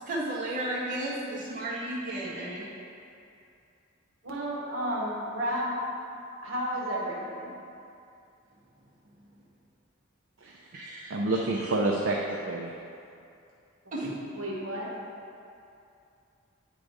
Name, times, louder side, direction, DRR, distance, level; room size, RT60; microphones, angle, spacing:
voice 1, 0.1-2.7 10.7-11.2 11.6-11.7 13.9-14.1, right 1 dB, 40° right, -8 dB, 1.8 m, -33 dB
voice 2, 4.2-5.8 6.4-7.5 14.4-14.9, equal, 85° right, -4 dB, 1.2 m, -32 dB
voice 3, 10.4-10.8 11.1-12.7, right 2 dB, 65° right, -1 dB, 0.6 m, -28 dB
9.3 x 3.8 x 4.8 m, 2.6 s
head